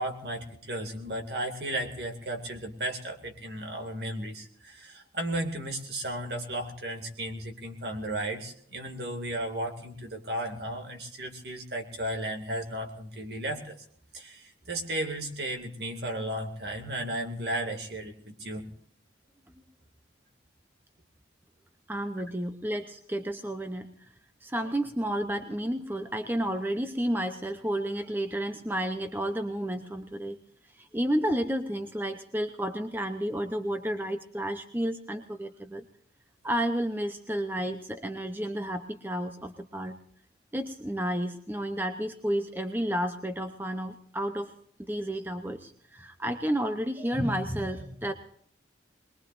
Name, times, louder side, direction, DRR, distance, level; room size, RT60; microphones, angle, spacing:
voice 1, 0.0-13.8 14.1-18.6, right 1 dB, 60° right, 3 dB, 2.3 m, -34 dB
voice 2, 21.9-23.9 24.4-30.4 30.7-35.8 36.4-40.0 40.5-44.5 44.8-48.1, right 1 dB, 10° right, 6 dB, 0.7 m, -31 dB
22.5 x 21.5 x 2.6 m, 0.62 s
head